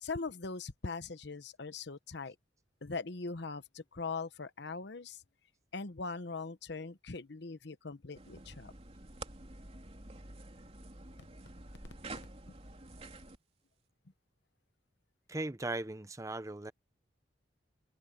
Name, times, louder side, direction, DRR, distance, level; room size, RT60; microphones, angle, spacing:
voice 1, 0.0-2.4 2.8-5.2 5.7-8.7, left 4 dB, 65° left, 1.0 m, -41 dB
sound 1, 8.1-13.4, right 2 dB, 35° right, 3.2 m, -49 dB
voice 2, 15.3-16.7, right 2 dB, 15° right, 0.8 m, -38 dB
open air
head